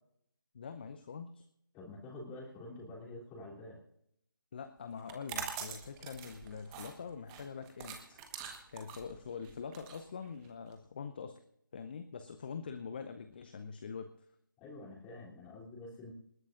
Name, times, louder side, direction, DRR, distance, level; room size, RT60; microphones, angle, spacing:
voice 1, 0.5-1.4 4.5-8.2 8.7-11.4 11.7-14.1, left 6 dB, 25° left, 9 dB, 0.7 m, -44 dB
voice 2, 1.7-3.8 14.6-16.1, left 2 dB, 10° left, -3 dB, 3.2 m, -47 dB
sound 1, 5.0-10.7, right 7 dB, 10° right, 1.3 m, -44 dB
27.5 x 11.5 x 2.6 m, 0.75 s
figure-of-eight pair, 155°, 11 cm